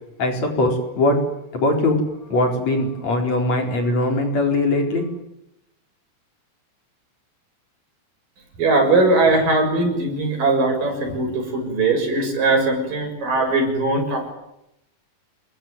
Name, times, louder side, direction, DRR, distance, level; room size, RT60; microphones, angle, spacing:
voice 1, 0.2-1.2 1.5-2.0 2.3-5.0, left 2 dB, 50° left, 3 dB, 5.7 m, -20 dB
voice 2, 8.6-14.3, right 2 dB, 70° right, 4 dB, 8.3 m, -20 dB
27.0 x 22.5 x 9.5 m, 0.84 s
omnidirectional pair, 4.0 m